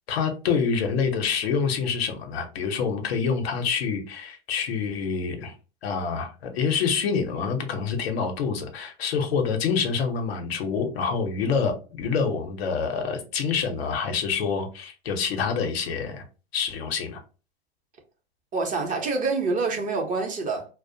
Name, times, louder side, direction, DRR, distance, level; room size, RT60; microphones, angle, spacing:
voice 1, 0.1-5.5 5.8-16.2 16.5-17.2, left 5 dB, 75° left, 0.7 m, -26 dB
voice 2, 18.5-20.7, right 4 dB, 25° right, 0.7 m, -26 dB
2.4 x 2.0 x 2.6 m
hypercardioid pair, 100°, 31 cm